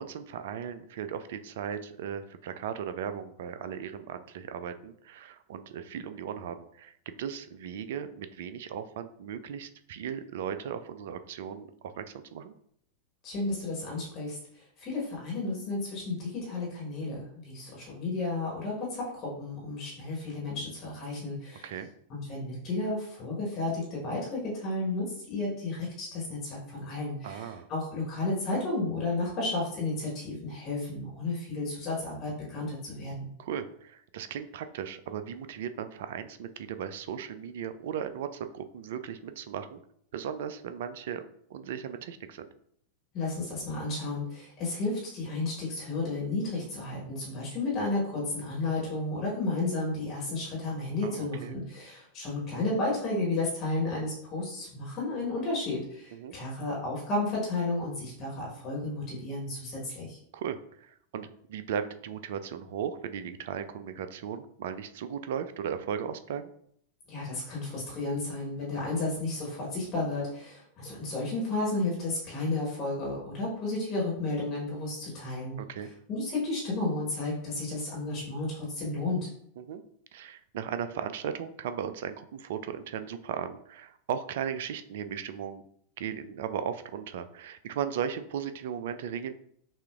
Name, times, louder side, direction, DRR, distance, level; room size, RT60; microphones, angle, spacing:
voice 1, 0.0-12.5 21.6-21.9 27.2-27.7 33.4-39.8 40.1-41.2 41.5-42.5 51.0-51.5 56.1-56.4 60.3-66.5 75.6-75.9 79.6-79.8 80.1-85.6 86.0-89.3, right 8 dB, 55° right, 10 dB, 0.3 m, -37 dB
voice 2, 13.2-21.7 22.1-33.3 43.1-60.2 67.1-75.6 76.1-79.3, left 2 dB, 30° left, -4 dB, 1.3 m, -32 dB
5.5 x 2.4 x 2.4 m, 0.69 s
figure-of-eight pair, 90°, 0 cm